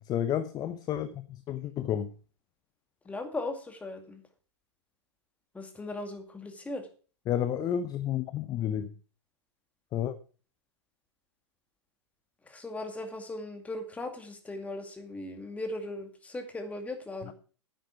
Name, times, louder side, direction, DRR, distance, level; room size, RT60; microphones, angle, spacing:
voice 1, 0.0-2.1 7.3-8.9 9.9-10.2 17.3-17.4, left 10 dB, 25° left, 13 dB, 0.8 m, -31 dB
voice 2, 3.0-4.2 5.5-6.9 12.4-17.3, left 2 dB, 10° left, 5 dB, 2.3 m, -38 dB
10.0 x 9.0 x 5.8 m, 0.38 s
figure-of-eight pair, 105°, 15 cm